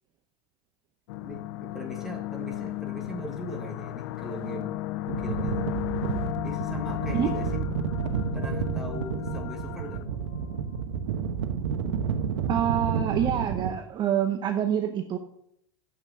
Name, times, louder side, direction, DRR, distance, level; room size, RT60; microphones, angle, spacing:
sound 1, 1.1-10.8, left 16 dB, 60° left, 0.5 m, -34 dB
voice 1, 1.2-4.7 5.1-5.7 6.4-7.6 8.3-10.0, equal, ahead, 0 dB, 1.8 m, -39 dB
sound 2, 5.1-13.7, right 7 dB, 75° right, 1.2 m, -30 dB
voice 2, 12.5-15.2, right 9 dB, 30° right, 6 dB, 0.8 m, -26 dB
7.9 x 5.8 x 7.8 m, 0.71 s
hypercardioid pair, 125°, 15 cm